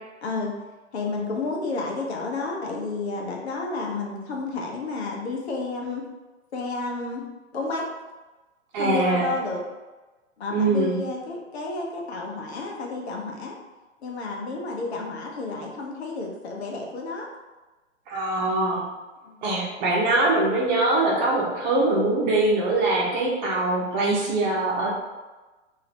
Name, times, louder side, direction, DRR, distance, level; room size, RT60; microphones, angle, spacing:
voice 1, 0.2-0.6 0.9-6.1 6.5-7.3 7.5-7.9 8.8-9.6 10.4-13.5 14.0-17.3 19.3-19.5, left 3 dB, 55° left, -1 dB, 0.9 m, -31 dB
voice 2, 8.7-9.3 10.5-11.0 18.1-18.8 19.4-24.9, right 2 dB, 35° right, -3 dB, 1.0 m, -23 dB
3.8 x 2.7 x 2.9 m, 1.2 s
figure-of-eight pair, 115°, 38 cm